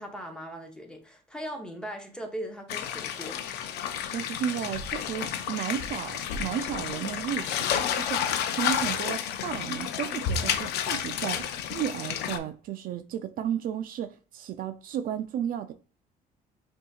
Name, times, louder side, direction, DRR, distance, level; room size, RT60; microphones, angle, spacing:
voice 1, 0.0-3.4, equal, 5° left, 0.8 m, -39 dB
sound 1, 2.7-12.4, left 9 dB, 80° left, 0.5 m, -31 dB
voice 2, 4.1-15.7, right 9 dB, 55° right, 0.4 m, -33 dB
5.5 x 2.7 x 2.3 m
cardioid pair, 110°, 17 cm